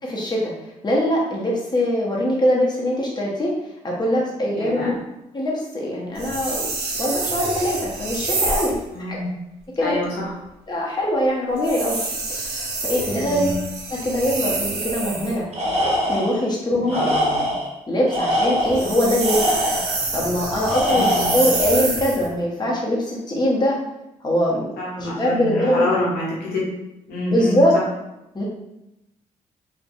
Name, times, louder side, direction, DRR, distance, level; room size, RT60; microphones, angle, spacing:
voice 1, 0.0-0.5 0.8-3.5 3.8-4.9 5.3-6.7 7.0-8.8 9.1-9.2 9.8-10.0 10.7-12.0 12.3-13.5 13.9-15.5 15.8-17.1 17.9-19.4 20.1-23.8 24.2-24.7 25.0-25.9 27.2-27.7 28.3-28.4, left 1 dB, 25° left, -3 dB, 0.8 m, -22 dB
voice 2, 4.5-4.9 8.9-9.3 9.8-10.3 13.1-13.5 16.9-17.4 20.8-21.3 24.8-26.7 27.1-27.8, left 1 dB, 75° left, -6 dB, 0.8 m, -27 dB
sound 1, 6.2-8.8 11.6-15.4 18.6-22.3, right 3 dB, 85° right, 0.6 m, -27 dB
Tools, 15.5-16.4 16.9-17.7 18.1-20.0 20.7-21.6, equal, 40° right, 0.8 m, -23 dB
2.5 x 2.1 x 2.5 m, 0.90 s
supercardioid pair, 50°, 16 cm